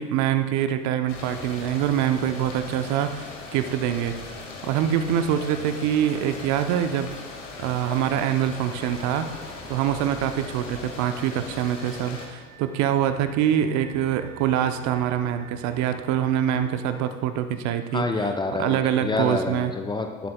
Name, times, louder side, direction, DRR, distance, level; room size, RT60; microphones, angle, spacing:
voice 1, 0.0-4.1 4.6-7.1 7.6-9.3 9.7-18.0 18.6-19.7, right 10 dB, 45° right, 9 dB, 0.8 m, -24 dB
sound 1, 1.1-12.3, left 3 dB, 65° left, 2.0 m, -39 dB
sound 2, 8.7-17.1, right 4 dB, 25° right, 1.5 m, -46 dB
voice 2, 17.9-20.3, left 3 dB, 10° left, 5 dB, 0.6 m, -27 dB
17.5 x 7.6 x 2.3 m, 1.4 s
figure-of-eight pair, 80°, 40 cm